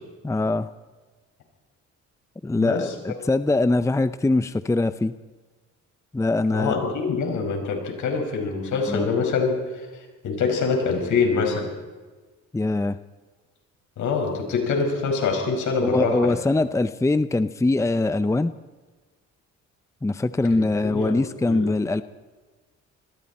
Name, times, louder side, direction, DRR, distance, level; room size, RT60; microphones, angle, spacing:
voice 1, 0.2-0.7 2.4-5.1 6.1-6.7 8.9-9.2 12.5-13.0 15.8-18.5 20.0-22.0, left 2 dB, 10° left, 13 dB, 0.6 m, -22 dB
voice 2, 2.5-2.9 6.5-9.5 10.2-11.7 14.0-16.3 20.5-21.7, left 5 dB, 75° left, 2 dB, 5.9 m, -25 dB
28.0 x 21.5 x 4.3 m, 1.3 s
cardioid pair, 90°, 30 cm